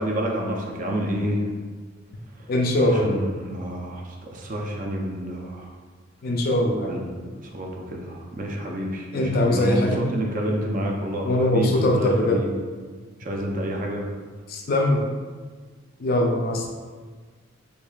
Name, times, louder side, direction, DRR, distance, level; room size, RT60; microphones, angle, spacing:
voice 1, 0.0-1.5 2.8-5.7 6.9-12.5 13.2-14.0, equal, 40° right, 0 dB, 0.5 m, -29 dB
voice 2, 2.5-3.2 6.2-7.0 9.1-10.1 11.2-12.4 14.5-15.1 16.0-16.7, left 1 dB, 50° left, 0 dB, 0.4 m, -22 dB
4.6 x 2.7 x 2.3 m, 1.5 s
head